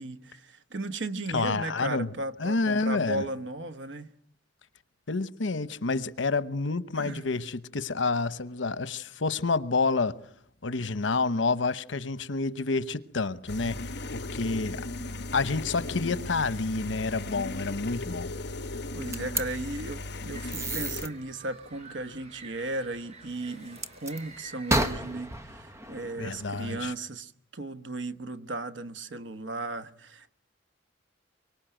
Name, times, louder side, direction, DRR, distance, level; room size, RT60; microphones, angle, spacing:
voice 1, 0.0-4.1 6.9-7.3 18.9-30.3, right 2 dB, 75° right, 1.2 m, -36 dB
voice 2, 1.3-2.1 2.4-3.2 5.1-10.2 10.6-13.8 14.1-14.9 15.3-18.3 26.2-26.9, left 3 dB, 90° left, 1.0 m, -29 dB
sound 1, 13.5-21.1, left 2 dB, 65° left, 1.1 m, -37 dB
sound 2, 19.1-19.4 20.5-21.1 23.8-24.2 24.7-26.9, right 1 dB, 15° right, 1.1 m, -31 dB
sound 3, 20.2-25.7, right 3 dB, 35° right, 5.5 m, -50 dB
24.5 x 24.0 x 9.1 m
head